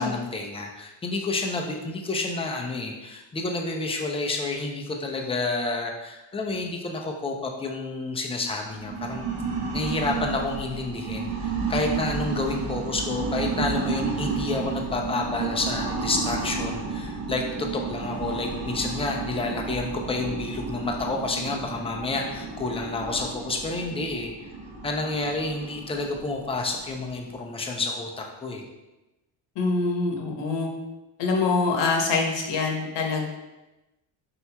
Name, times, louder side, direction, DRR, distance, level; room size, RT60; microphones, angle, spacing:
voice 1, 0.0-9.2 9.7-24.5 24.8-28.6, left 3 dB, 15° left, 1 dB, 0.4 m, -29 dB
sound 1, 8.6-27.4, right 4 dB, 50° right, 0.8 m, -32 dB
voice 2, 29.6-30.7 31.2-33.3, left 3 dB, 65° left, 0 dB, 0.9 m, -24 dB
4.6 x 4.2 x 2.2 m, 1.0 s
cardioid pair, 125°, 46 cm